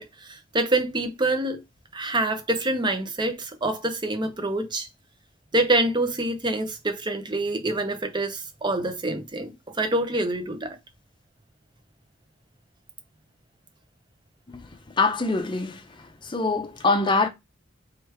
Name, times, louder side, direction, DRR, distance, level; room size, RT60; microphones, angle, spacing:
voice 1, 0.0-1.6 1.9-4.9 5.5-10.8, right 2 dB, 25° right, 0.8 m, -26 dB
voice 2, 15.0-15.7 16.3-17.3, left 3 dB, 25° left, 0.6 m, -23 dB
3.2 x 3.1 x 4.7 m
head